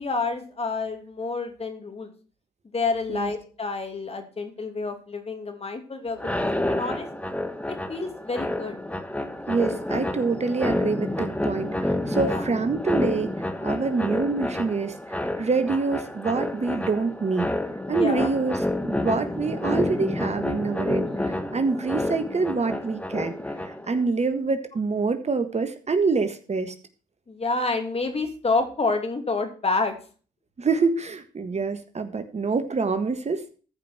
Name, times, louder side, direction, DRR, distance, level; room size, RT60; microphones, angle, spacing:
voice 1, 0.0-2.1 2.7-6.3 6.6-7.3 7.7-8.8 12.2-12.5 17.9-18.3 21.0-21.4 27.3-30.0 31.5-31.6, left 3 dB, 35° left, 5 dB, 2.8 m, -29 dB
sound 1, 6.1-24.0, left 1 dB, 5° left, 1.4 m, -29 dB
voice 2, 9.5-17.5 17.9-23.3 23.6-26.7 30.6-33.6, right 4 dB, 40° right, 9 dB, 1.5 m, -26 dB
14.5 x 5.3 x 6.1 m, 0.39 s
hypercardioid pair, 50°, 18 cm